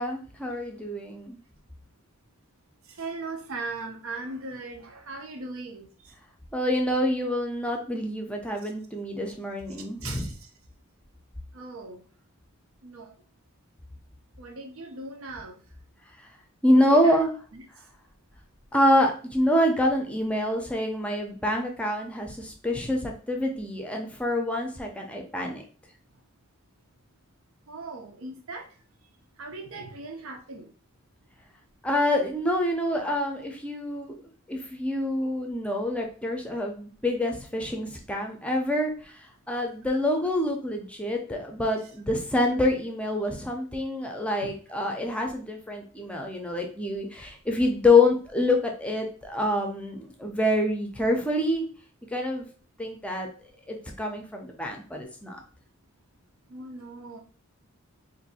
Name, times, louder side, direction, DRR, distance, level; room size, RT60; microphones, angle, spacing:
voice 1, 0.0-1.4 6.5-10.3 16.6-17.3 18.7-25.6 31.8-34.1 34.5-38.9 39.5-51.7 52.1-52.5 52.8-53.3 53.7-55.4, left 1 dB, 5° left, 0.5 m, -26 dB
voice 2, 2.8-6.1 8.6-8.7 10.0-10.5 11.5-12.0 12.8-13.1 14.4-15.6 16.7-17.2 17.5-17.7 27.7-28.7 29.4-30.7 44.4-44.5 56.5-57.2, right 3 dB, 75° right, 0.7 m, -39 dB
2.6 x 2.6 x 4.1 m
head